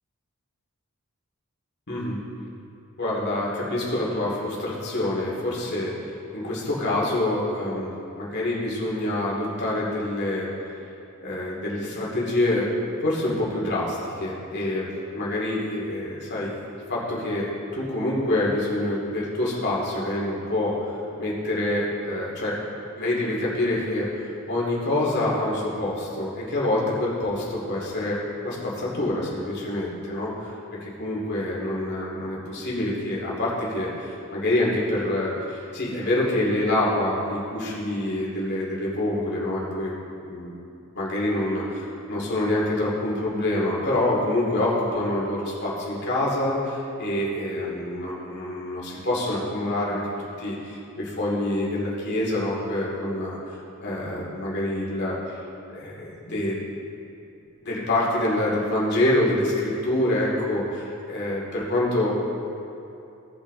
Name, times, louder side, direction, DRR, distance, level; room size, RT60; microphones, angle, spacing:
voice 1, 1.9-2.2 3.0-7.9 8.2-10.7 11.2-12.7 13.0-16.6 16.9-20.9 21.2-22.6 23.0-30.5 30.8-39.9 40.2-40.5 40.9-55.4 55.7-56.6 57.6-62.2, left 1 dB, 50° left, -5 dB, 2.5 m, -26 dB
17.5 x 6.0 x 3.9 m, 2.7 s
head